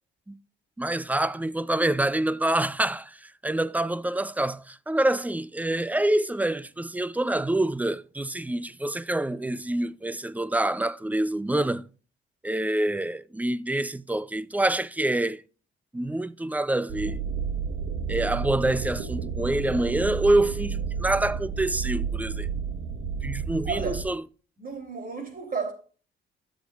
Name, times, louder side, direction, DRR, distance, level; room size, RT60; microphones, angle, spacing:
voice 1, 0.8-11.8 12.4-15.4 15.9-17.2 18.1-22.5 23.2-24.2, right 1 dB, 10° right, 0.5 m, -26 dB
sound 1, 16.9-24.0, right 6 dB, 80° right, 1.3 m, -31 dB
voice 2, 23.6-24.0 24.6-25.7, right 5 dB, 45° right, 3.1 m, -32 dB
13.0 x 7.4 x 2.4 m
cardioid pair, 90°, 20 cm